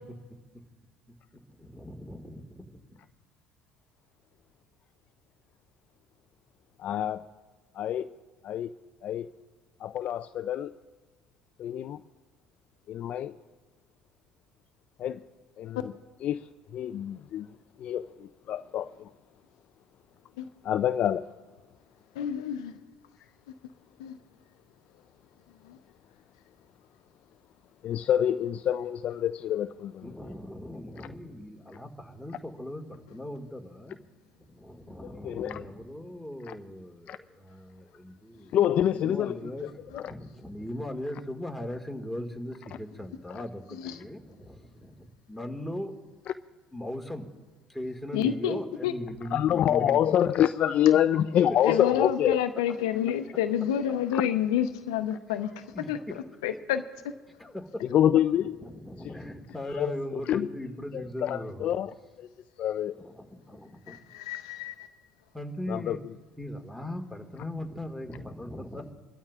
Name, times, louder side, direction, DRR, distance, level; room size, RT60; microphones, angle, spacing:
voice 1, 1.3-3.0 30.0-34.0 34.5-45.9 46.7-47.3 47.7-50.4 55.7-55.9 57.4-57.8 58.4-61.7 63.0-64.0 65.3-66.0 66.4-68.9, left 1 dB, 5° left, 1.9 m, -39 dB
voice 2, 6.8-7.3 7.7-8.1 8.4-8.7 9.0-9.3 9.8-10.7 11.6-12.0 12.9-13.4 15.0-15.2 15.6-15.9 16.2-17.5 17.8-19.1 20.6-21.2 27.8-30.1 35.0-35.6 36.5-36.6 37.1-37.2 38.5-40.1 49.3-52.4 54.1-54.2 57.8-58.5 59.7-60.5 60.9-62.3 62.6-63.0 65.7-66.0, left 10 dB, 55° left, 0.4 m, -27 dB
voice 3, 22.1-22.7 24.0-24.2 25.6-25.8 43.7-44.0 48.1-48.9 51.6-56.8 63.9-64.9, left 9 dB, 80° left, 0.8 m, -29 dB
26.0 x 13.0 x 2.5 m
hypercardioid pair, 65°, 3 cm